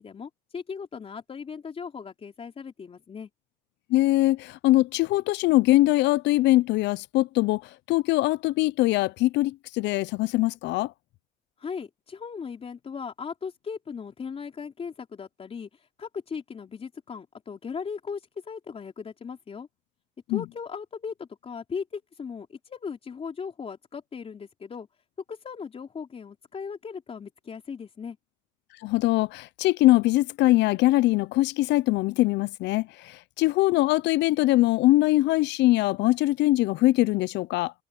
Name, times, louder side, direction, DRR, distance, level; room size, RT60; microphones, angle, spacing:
voice 1, 0.0-3.3 11.6-15.7 16.0-19.7 20.3-24.9 25.3-28.2, left 6 dB, 30° left, 3.9 m, -37 dB
voice 2, 3.9-7.6 7.9-10.9 20.3-20.4 28.8-37.7, left 18 dB, 70° left, 0.6 m, -22 dB
cardioid pair, 120°, 19 cm